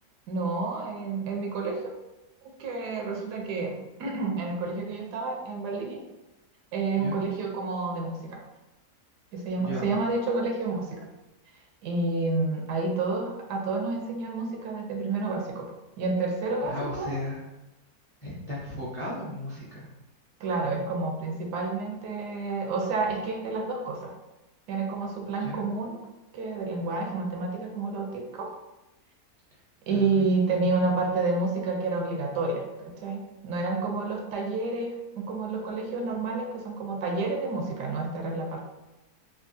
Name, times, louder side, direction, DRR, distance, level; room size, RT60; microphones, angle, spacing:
voice 1, 0.3-1.9 2.4-6.0 6.7-8.4 9.3-11.0 11.8-17.1 20.4-24.1 24.7-26.0 26.3-28.5 29.9-38.7, right 3 dB, 80° right, 1 dB, 1.2 m, -29 dB
voice 2, 9.6-9.9 16.6-17.5 18.2-19.9 25.4-25.7 29.9-30.7, left 1 dB, 25° left, -9 dB, 0.7 m, -36 dB
3.5 x 2.3 x 2.6 m, 1.0 s
omnidirectional pair, 1.8 m